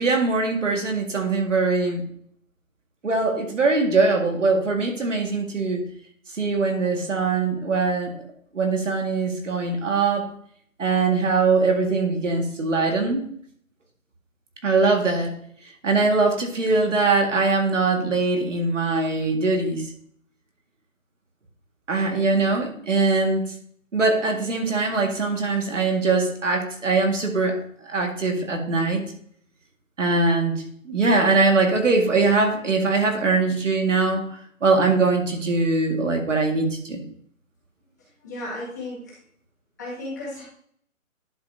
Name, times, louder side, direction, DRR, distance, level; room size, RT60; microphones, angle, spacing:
voice 1, 0.0-2.0 3.0-5.8 6.3-8.2 8.5-10.3 10.8-13.2 14.6-15.4 15.8-19.9 21.9-23.5 23.9-27.6 27.9-29.0 30.0-37.0, right 3 dB, 60° right, 3 dB, 1.9 m, -22 dB
voice 2, 38.2-39.2 39.8-40.4, left 1 dB, 15° left, -8 dB, 1.5 m, -34 dB
11.0 x 5.3 x 2.7 m, 0.63 s
hypercardioid pair, 180°, 41 cm